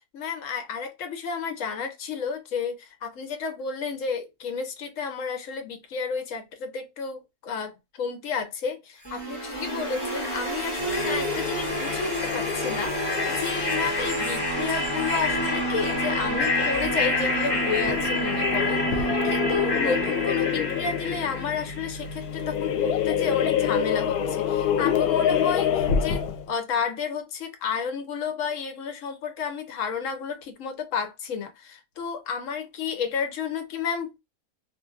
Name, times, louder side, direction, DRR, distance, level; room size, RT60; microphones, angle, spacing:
voice 1, 0.1-34.2, left 6 dB, 65° left, 1.0 m, -31 dB
sound 1, 9.0-22.0, equal, 20° left, 1.1 m, -28 dB
sound 2, 10.8-26.5, left 8 dB, 85° left, 1.1 m, -28 dB
2.8 x 2.6 x 2.3 m
omnidirectional pair, 1.6 m